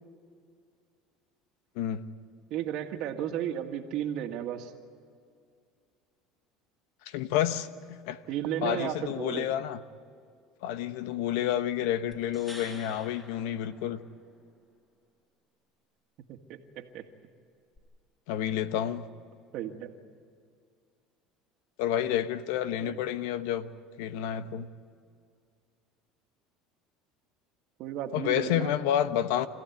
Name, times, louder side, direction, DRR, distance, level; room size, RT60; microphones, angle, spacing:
voice 1, 2.5-4.7 8.3-9.5 16.3-17.0 19.5-19.9 22.8-23.0 27.8-28.7, right 10 dB, 65° right, 1.9 m, -34 dB
voice 2, 7.1-8.2 8.6-9.8 10.6-14.0 18.3-19.0 21.8-23.7 24.0-24.7 28.1-29.5, left 11 dB, 80° left, 1.0 m, -29 dB
sound 1, 12.1-14.4 17.8-17.9, equal, 20° left, 5.1 m, -48 dB
26.0 x 15.5 x 9.5 m
supercardioid pair, 110°, 0 cm